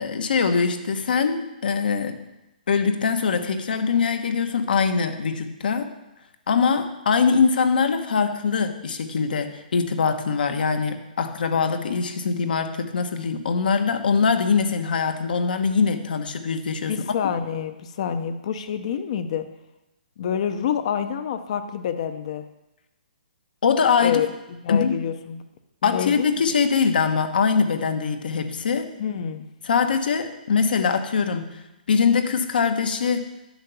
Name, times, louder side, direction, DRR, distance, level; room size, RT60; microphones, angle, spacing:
voice 1, 0.0-2.2 2.7-5.9 6.5-17.0 23.6-24.2 24.7-24.9 25.8-28.9 29.6-31.5 31.9-33.2, left 5 dB, 70° left, 7 dB, 1.2 m, -22 dB
voice 2, 16.9-19.5 20.2-22.5 24.0-25.4 25.8-26.3 29.0-29.5, left 8 dB, 40° left, 10 dB, 0.7 m, -27 dB
10.5 x 5.7 x 6.9 m, 0.95 s
hypercardioid pair, 165°, 5 cm